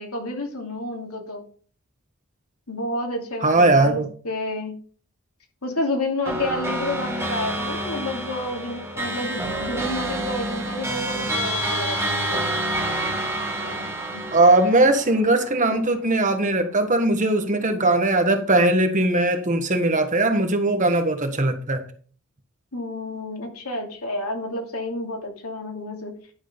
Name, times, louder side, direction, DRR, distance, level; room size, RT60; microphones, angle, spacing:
voice 1, 0.0-1.4 2.7-4.7 5.6-12.4 13.6-14.2 22.7-26.1, left 2 dB, 85° left, 3.1 m, -30 dB
voice 2, 3.4-4.1 14.3-21.8, right 2 dB, 35° right, 1.4 m, -19 dB
sound 1, 6.2-15.9, right 1 dB, 10° right, 2.0 m, -28 dB
11.0 x 6.2 x 5.2 m
head